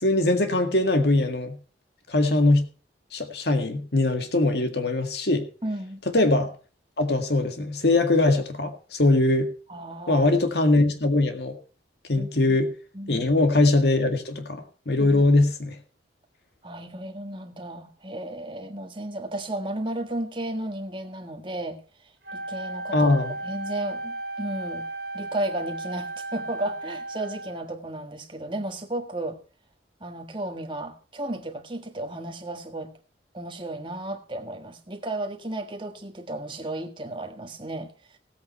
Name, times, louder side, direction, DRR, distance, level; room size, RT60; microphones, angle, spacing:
voice 1, 0.0-1.6 2.1-2.7 3.1-5.5 6.1-6.5 7.0-9.5 10.1-11.6 12.1-12.7 13.1-14.6 14.9-15.8 22.9-23.3, left 2 dB, 65° left, 7 dB, 1.9 m, -21 dB
voice 2, 5.6-6.0 9.7-10.3 12.1-12.6 12.9-13.3 15.0-15.2 16.6-21.8 22.3-24.9 25.1-29.4 30.0-32.9 33.3-38.2, right 1 dB, 25° right, 3 dB, 1.6 m, -34 dB
Wind instrument woodwind instrument, 22.2-27.7, right 2 dB, 65° right, 2.8 m, -35 dB
17.0 x 8.5 x 4.5 m, 0.37 s
head